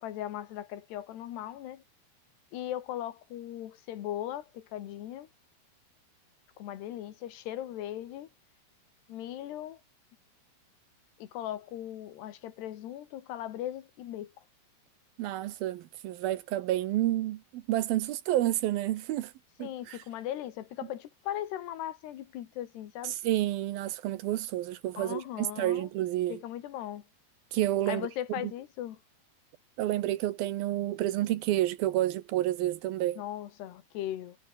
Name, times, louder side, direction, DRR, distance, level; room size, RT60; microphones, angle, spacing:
voice 1, 0.0-1.8 2.5-5.3 6.6-8.3 9.1-9.8 11.2-14.3 19.6-23.2 25.0-25.9 26.3-27.0 27.9-29.0 33.2-34.4, left 12 dB, 80° left, 3.8 m, -38 dB
voice 2, 15.2-19.3 19.6-20.0 23.0-26.4 27.5-28.1 29.8-33.2, right 14 dB, 75° right, 2.6 m, -30 dB
omnidirectional pair, 4.7 m